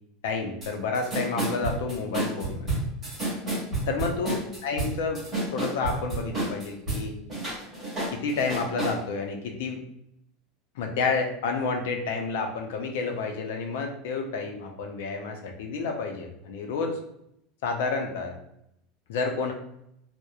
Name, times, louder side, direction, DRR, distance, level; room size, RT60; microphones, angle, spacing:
voice 1, 0.2-2.7 3.9-5.2 5.5-7.1 8.1-9.8 10.8-17.0 17.6-18.4 19.1-19.5, left 4 dB, 75° left, 3 dB, 0.5 m, -30 dB
sound 1, 0.6-0.7 0.9-7.0 7.3-9.0, right 2 dB, 15° right, 1.2 m, -30 dB
2.8 x 2.0 x 2.3 m, 0.77 s
supercardioid pair, 180°, 0 cm